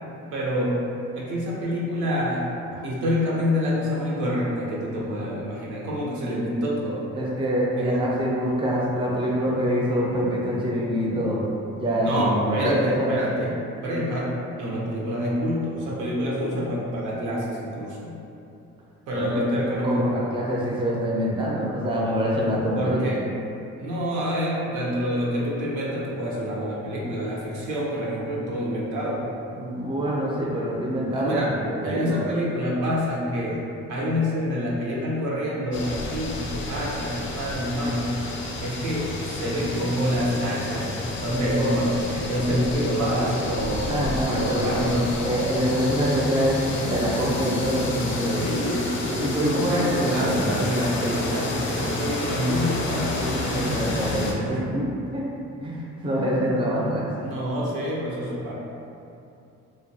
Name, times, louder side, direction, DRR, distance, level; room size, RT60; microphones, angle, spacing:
voice 1, 0.3-0.8 1.1-2.5 2.8-7.1 7.8-8.0 12.0-18.1 19.1-20.3 22.7-23.3 23.8-29.2 31.1-31.5 31.8-33.6 33.9-38.1 38.6-43.9 44.2-45.1 47.9-49.0 49.6-53.3 57.2-58.5, equal, 85° right, -5 dB, 0.7 m, -27 dB
voice 2, 7.1-11.4 11.8-13.2 19.2-19.5 19.8-23.1 29.6-32.2 43.9-44.8 45.2-48.4 49.1-50.6 53.2-55.3 55.6-57.1, equal, 20° right, -5 dB, 0.4 m, -25 dB
sound 1, 35.7-54.3, left 2 dB, 45° left, 0.4 m, -30 dB
2.6 x 2.1 x 2.7 m, 2.7 s
cardioid pair, 100°, 29 cm